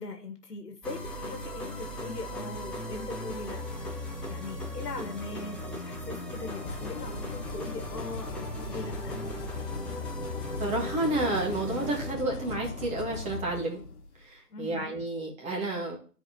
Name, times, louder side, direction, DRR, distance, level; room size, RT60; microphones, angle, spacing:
voice 1, 0.0-3.6 4.0-9.2 14.5-14.9, left 3 dB, 75° left, 5 dB, 1.6 m, -41 dB
sound 1, 0.8-12.1, equal, ahead, 0.7 m, -38 dB
sound 2, 6.2-14.2, left 4 dB, 50° left, 1.8 m, -40 dB
voice 2, 10.6-13.8 14.2-16.0, right 2 dB, 15° right, 0 dB, 1.8 m, -30 dB
13.0 x 4.7 x 3.0 m, 0.40 s
figure-of-eight pair, 135°, 47 cm